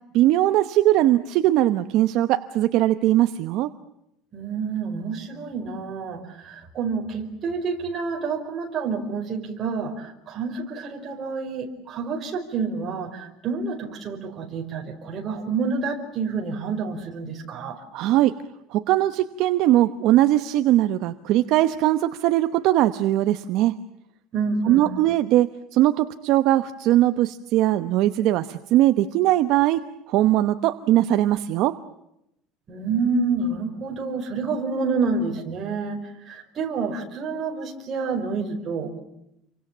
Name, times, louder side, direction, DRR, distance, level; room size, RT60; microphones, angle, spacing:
voice 1, 0.1-3.7 17.9-18.3 18.7-23.8 24.6-31.8, right 14 dB, 55° right, 10 dB, 1.0 m, -20 dB
voice 2, 4.3-17.8 24.3-25.0 32.7-39.0, right 4 dB, 30° right, 2 dB, 5.0 m, -28 dB
29.5 x 24.5 x 7.4 m, 0.80 s
cardioid pair, 165°, 0 cm